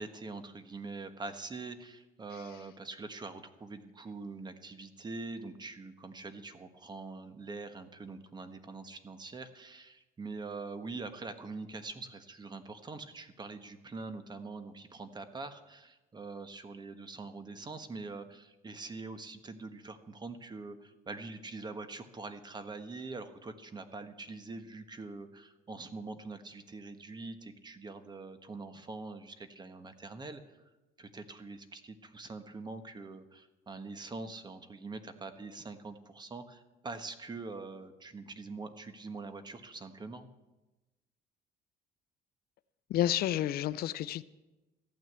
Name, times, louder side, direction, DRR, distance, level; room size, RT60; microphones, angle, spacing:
voice 1, 0.0-30.6 31.0-40.3, right 3 dB, 25° right, 10 dB, 1.3 m, -44 dB
voice 2, 42.9-44.2, left 12 dB, 65° left, 15 dB, 0.5 m, -30 dB
14.5 x 9.4 x 8.0 m, 1.1 s
cardioid pair, 110°, 17 cm